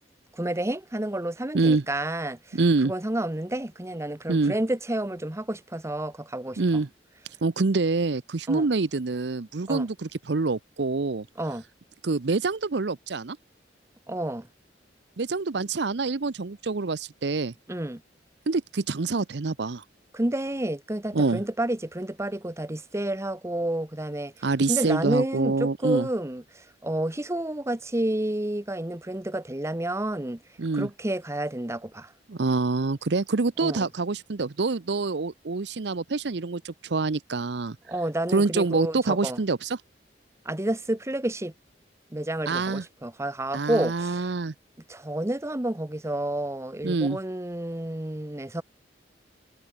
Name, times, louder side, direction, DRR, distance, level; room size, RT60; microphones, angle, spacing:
voice 1, 0.3-2.6 2.8-6.6 8.5-8.7 9.7-9.9 11.4-11.6 14.1-14.5 17.7-18.0 20.1-30.4 30.7-32.1 33.6-33.9 37.9-39.4 40.4-41.5 42.1-44.3 44.9-48.6, right 1 dB, 15° right, 1.0 m, -30 dB
voice 2, 1.5-1.8 2.5-2.9 4.3-4.5 6.6-6.9 7.4-11.3 12.0-13.4 15.2-17.5 18.5-19.8 21.1-21.4 24.4-26.1 30.6-30.9 32.3-37.8 38.3-39.8 42.5-42.8 43.5-44.5 46.8-47.2, right 3 dB, 65° right, 0.7 m, -26 dB
head